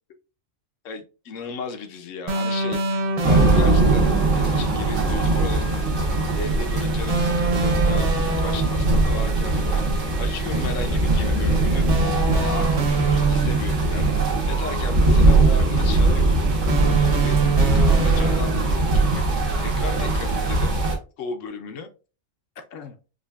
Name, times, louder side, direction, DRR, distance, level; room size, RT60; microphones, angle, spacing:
voice 1, 0.8-2.8 3.2-5.8 6.3-9.9 10.2-11.9 12.3-14.1 14.5-16.4 16.9-19.2 19.6-20.8 21.2-21.9 22.6-22.9, left 4 dB, 75° left, 7 dB, 1.0 m, -35 dB
sound 1, 2.3-4.1 7.1-8.9 11.9-13.8 16.7-18.9, right 3 dB, 50° right, 0.4 m, -25 dB
sound 2, 3.2-21.0, right 2 dB, 75° right, 1.5 m, -20 dB
5.0 x 2.3 x 2.3 m, 0.34 s
omnidirectional pair, 1.3 m